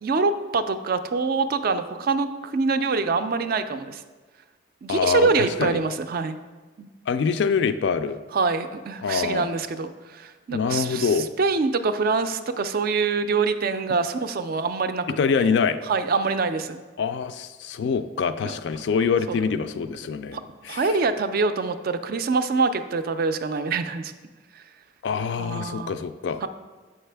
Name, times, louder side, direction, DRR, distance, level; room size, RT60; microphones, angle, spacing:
voice 1, 0.0-4.0 4.8-6.4 6.8-6.9 8.3-15.0 15.9-16.8 18.4-18.5 19.3-19.4 20.3-20.4 20.7-24.1 24.6-24.7 25.4-26.0 26.4-26.5, right 4 dB, 50° right, 10 dB, 0.3 m, -25 dB
voice 2, 4.9-5.8 7.1-8.2 9.0-9.4 10.5-11.3 15.2-15.8 17.0-21.0 25.0-26.4, left 6 dB, 60° left, 10 dB, 0.3 m, -25 dB
7.4 x 5.5 x 3.3 m, 1.3 s
head